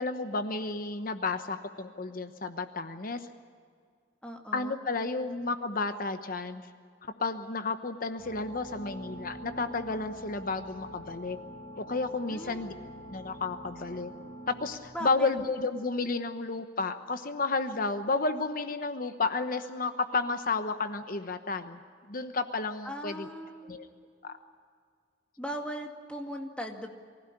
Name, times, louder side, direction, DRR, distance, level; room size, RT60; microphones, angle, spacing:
voice 1, 0.0-3.3 4.5-6.6 7.0-11.4 11.8-12.7 13.1-14.1 14.5-21.8 22.1-23.3 23.7-23.9 24.2-24.3, left 3 dB, 50° left, 9 dB, 1.0 m, -32 dB
voice 2, 4.2-4.8 12.3-12.7 14.9-15.3 22.8-23.8 25.4-26.9, equal, 5° left, 2 dB, 2.2 m, -38 dB
sound 1, 8.2-14.8, equal, 15° right, 7.9 m, -45 dB
24.0 x 16.0 x 9.8 m, 2.1 s
head